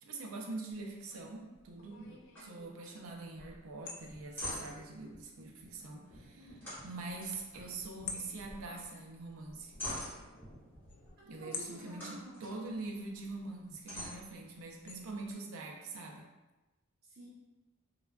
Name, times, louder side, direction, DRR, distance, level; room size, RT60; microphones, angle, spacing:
voice 1, 0.0-6.4 6.8-9.7 11.2-16.2, right 3 dB, 75° right, 1 dB, 0.4 m, -44 dB
sound 1, 0.7-15.3, left 5 dB, 55° left, 0.3 m, -52 dB
sound 2, 2.3-2.5 2.8-2.9 3.3-3.6 4.0-4.9 6.6-8.0 8.3-8.9 9.3-10.6 11.7-12.5 13.1-13.2 13.9-14.9, left 1 dB, 10° left, 1.0 m, -44 dB
sound 3, 4.0-11.1, equal, 35° left, 0.9 m, -60 dB
voice 2, 6.4-6.7 11.2-12.5 17.0-17.3, right 2 dB, 45° right, -6 dB, 0.8 m, -52 dB
3.2 x 2.2 x 2.3 m, 1.1 s
head